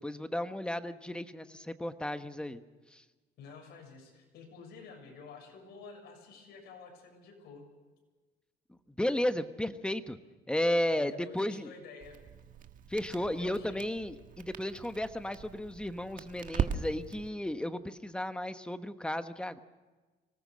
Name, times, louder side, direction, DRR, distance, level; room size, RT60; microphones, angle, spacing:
voice 1, 0.0-2.6 2.9-3.0 8.7-10.2 10.5-11.7 12.9-19.6, left 1 dB, 5° left, 9 dB, 1.2 m, -34 dB
voice 2, 3.4-7.7 10.9-12.2 13.1-13.8, left 5 dB, 70° left, 2 dB, 7.0 m, -50 dB
Crackle, 12.0-17.3, right 7 dB, 55° right, 1.6 m, -39 dB
25.0 x 18.5 x 6.4 m, 1.3 s
cardioid pair, 110°, 17 cm